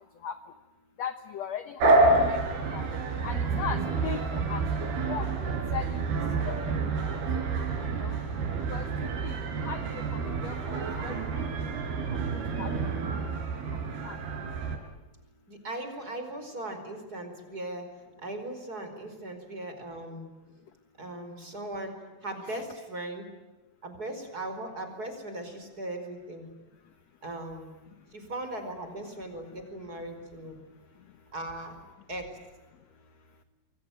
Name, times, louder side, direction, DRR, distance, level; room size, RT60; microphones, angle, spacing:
voice 1, 1.0-1.9 2.2-2.9 3.2-6.0 6.4-6.5 7.1-7.2 7.8-8.2 8.7-10.8 11.0-11.2 12.3-12.7 14.0-14.2 22.5-22.6, left 8 dB, 65° left, 10 dB, 1.7 m, -38 dB
sound 1, 1.8-14.8, right 3 dB, 80° right, 5.6 m, -28 dB
voice 2, 15.5-17.9 18.2-20.3 21.0-21.9 22.2-23.2 23.8-26.4 27.2-27.7 28.1-30.6 31.3-31.8 32.1-32.3, right 1 dB, 25° right, 6 dB, 5.0 m, -38 dB
27.0 x 23.5 x 9.3 m, 1.1 s
omnidirectional pair, 4.5 m